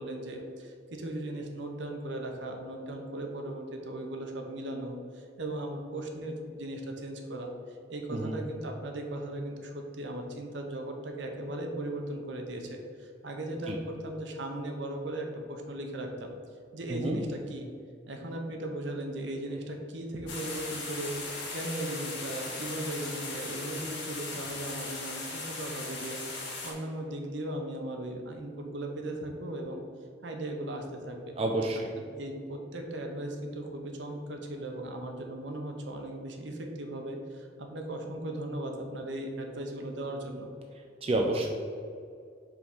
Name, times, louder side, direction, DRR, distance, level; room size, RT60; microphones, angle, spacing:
voice 1, 0.0-16.3 16.7-17.7 18.1-21.2 21.5-29.8 30.2-31.3 31.7-40.5, right 1 dB, 70° right, 3 dB, 0.8 m, -37 dB
sound 1, 20.3-26.7, left 3 dB, 75° left, 1.4 m, -38 dB
voice 2, 31.4-31.8 41.0-41.5, right 2 dB, 30° right, 1 dB, 0.4 m, -29 dB
4.9 x 3.8 x 5.3 m, 2.3 s
head